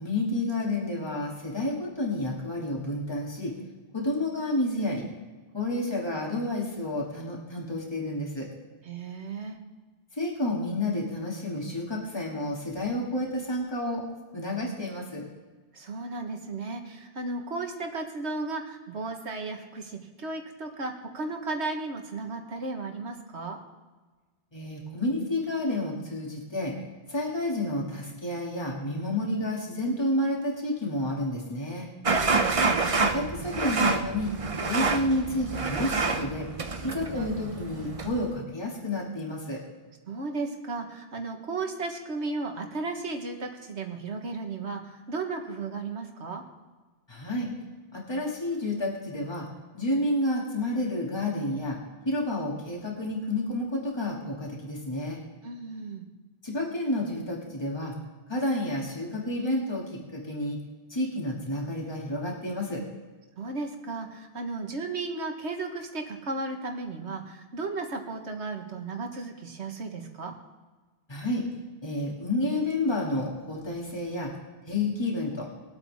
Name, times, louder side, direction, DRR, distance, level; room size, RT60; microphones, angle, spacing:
voice 1, 0.0-3.5 3.9-5.0 5.5-8.5 10.1-14.0 14.3-15.3 24.5-26.8 27.1-31.9 33.0-34.3 34.7-36.5 36.8-39.6 47.1-47.5 47.9-49.5 49.7-51.8 52.0-55.2 56.4-57.9 58.3-60.6 60.9-62.8 71.1-71.4 71.8-74.3 74.7-75.5, left 1 dB, 25° left, -3 dB, 2.7 m, -30 dB
voice 2, 8.8-9.6 15.7-23.6 32.1-32.9 36.8-37.0 40.1-46.4 55.4-56.1 63.4-70.3, right 3 dB, 85° right, 3 dB, 1.8 m, -35 dB
sound 1, 32.1-38.3, right 4 dB, 35° right, 0.8 m, -28 dB
22.0 x 8.3 x 3.6 m, 1.3 s
omnidirectional pair, 1.1 m